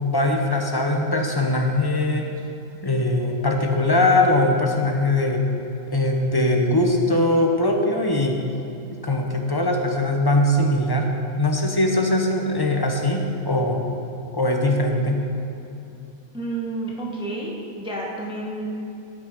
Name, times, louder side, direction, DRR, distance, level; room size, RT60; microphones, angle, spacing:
voice 1, 0.0-2.3 2.8-5.4 5.9-8.4 8.9-11.1 11.4-13.8 14.3-15.2, left 1 dB, 20° left, 2 dB, 0.7 m, -21 dB
voice 2, 16.3-18.7, right 2 dB, 5° right, -3 dB, 1.0 m, -30 dB
13.0 x 6.3 x 5.0 m, 2.9 s
omnidirectional pair, 1.5 m